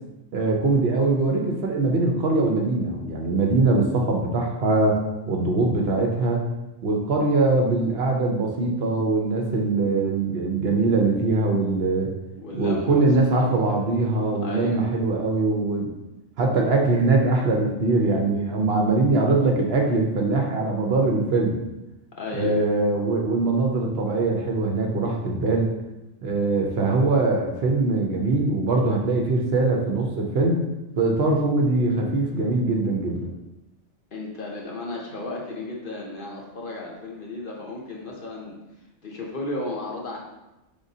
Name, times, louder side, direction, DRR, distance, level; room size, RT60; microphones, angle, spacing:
voice 1, 0.3-5.0 5.3-6.4 6.8-12.1 12.5-15.9 16.4-21.6 22.3-25.7 26.2-30.6 31.0-33.3, right 3 dB, 60° right, 0 dB, 0.8 m, -22 dB
voice 2, 12.4-13.1 13.3-13.8 14.4-14.8 22.2-22.6 34.1-38.6 39.0-40.2, left 2 dB, 50° left, -2 dB, 0.8 m, -34 dB
5.0 x 3.5 x 2.7 m, 0.99 s
omnidirectional pair, 1.3 m